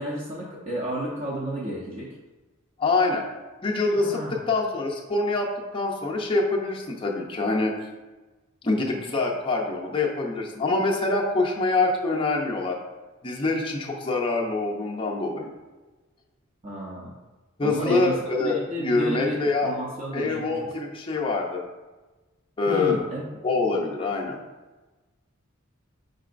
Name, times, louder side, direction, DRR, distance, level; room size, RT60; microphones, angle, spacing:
voice 1, 0.0-2.1 4.0-4.4 16.6-17.1 17.6-18.1 18.4-20.7 22.7-23.3, right 1 dB, 30° right, -5 dB, 0.6 m, -31 dB
voice 2, 2.8-3.2 3.6-7.7 8.6-12.8 13.2-15.5 17.6-19.7 20.1-21.6 22.6-23.0 23.4-24.4, left 3 dB, 25° left, -2 dB, 0.5 m, -25 dB
5.1 x 3.8 x 2.5 m, 1.2 s
head